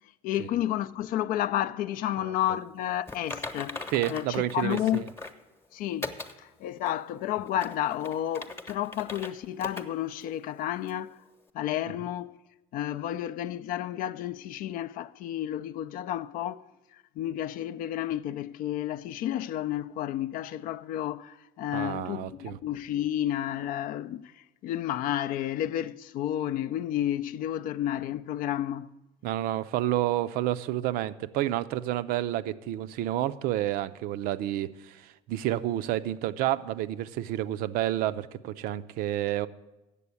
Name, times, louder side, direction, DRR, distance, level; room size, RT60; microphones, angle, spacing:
voice 1, 0.2-5.1 5.7-11.2 11.5-12.3 12.7-16.6 17.2-24.3 24.6-28.9, left 12 dB, 60° left, 0.4 m, -31 dB
Typing, 3.1-5.4 6.0-6.3 6.9-7.0 7.5-9.3 9.6-9.8 10.2-10.3 10.9-11.0, left 3 dB, 15° left, 0.9 m, -39 dB
voice 2, 3.9-5.1 21.7-22.6 29.2-39.5, right 13 dB, 65° right, 0.5 m, -30 dB
8.3 x 7.0 x 8.4 m
supercardioid pair, 100°, 16 cm